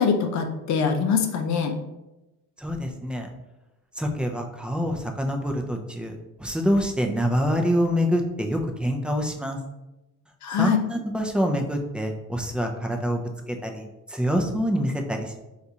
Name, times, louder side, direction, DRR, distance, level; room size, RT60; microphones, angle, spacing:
voice 1, 0.0-1.8 10.4-10.8, left 6 dB, 60° left, 5 dB, 0.5 m, -23 dB
voice 2, 2.6-3.3 4.0-9.6 10.6-13.2 13.5-15.4, equal, 5° right, 2 dB, 0.4 m, -26 dB
3.9 x 2.4 x 2.7 m, 1.0 s
cardioid pair, 90°, 33 cm